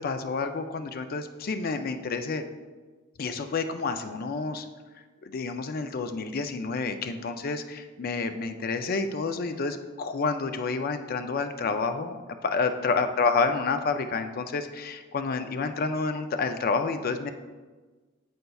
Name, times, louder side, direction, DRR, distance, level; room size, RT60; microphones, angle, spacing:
voice 1, 0.0-2.4 3.2-4.7 5.2-17.3, left 4 dB, 50° left, 8 dB, 0.4 m, -29 dB
7.8 x 5.3 x 2.3 m, 1.3 s
head